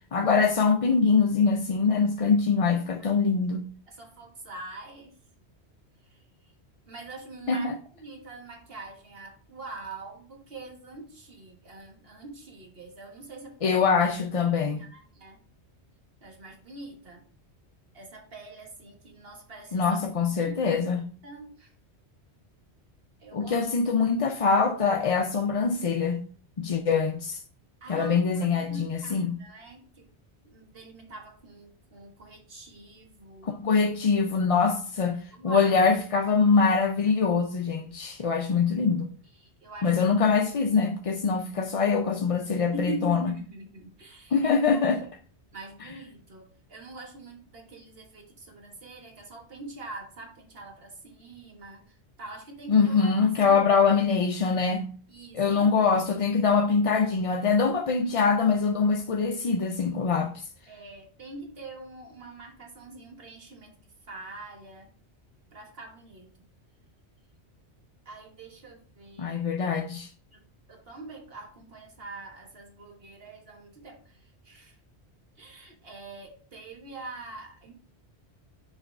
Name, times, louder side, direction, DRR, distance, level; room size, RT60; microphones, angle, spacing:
voice 1, 0.1-3.6 7.5-7.7 13.6-14.8 19.7-21.1 23.3-26.2 26.6-27.4 27.9-29.4 33.4-39.1 39.8-43.3 44.3-45.1 52.7-54.9 55.3-60.4 69.2-70.1, left 5 dB, 50° left, 0.4 m, -24 dB
voice 2, 2.7-3.1 3.9-5.2 6.1-6.2 6.9-7.7 7.9-13.8 14.8-15.4 16.2-17.2 17.9-20.0 20.3-20.6 21.2-21.7 23.2-23.6 27.8-30.1 30.4-33.8 35.3-35.7 39.4-40.0 42.7-44.8 45.5-53.6 55.1-56.1 60.7-63.7 64.1-64.9 65.5-66.3 68.1-69.8 70.3-70.4 70.7-74.8 75.4-77.8, right 3 dB, 60° right, 1.7 m, -44 dB
6.3 x 4.4 x 3.4 m
omnidirectional pair, 1.1 m